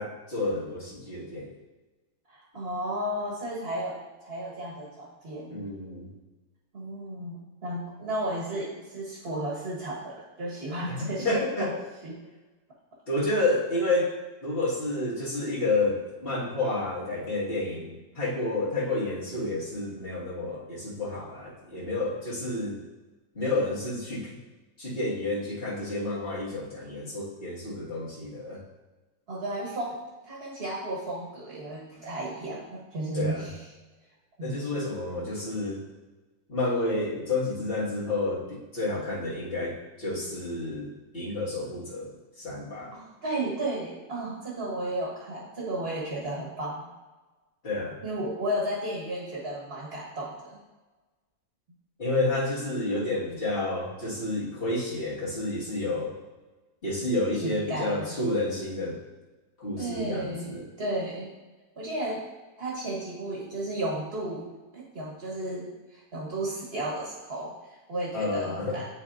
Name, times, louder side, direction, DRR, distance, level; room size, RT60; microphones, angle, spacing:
voice 1, 0.0-1.5 5.5-6.1 10.9-11.8 13.1-14.1 14.4-22.8 23.3-24.4 24.8-28.6 33.1-33.5 34.4-35.9 36.5-42.9 47.6-48.0 52.0-56.1 56.8-59.0 59.6-60.6 68.1-68.8, left 2 dB, 35° left, -7 dB, 2.0 m, -30 dB
voice 2, 2.3-4.0 4.2-5.7 6.7-11.7 12.0-12.2 29.3-33.6 34.4-34.7 42.9-46.9 48.0-50.6 57.4-58.2 59.8-61.3 61.8-62.3 62.6-64.5 64.7-68.9, right 1 dB, 40° right, -3 dB, 1.4 m, -33 dB
10.5 x 4.2 x 2.6 m, 1.2 s
omnidirectional pair, 1.6 m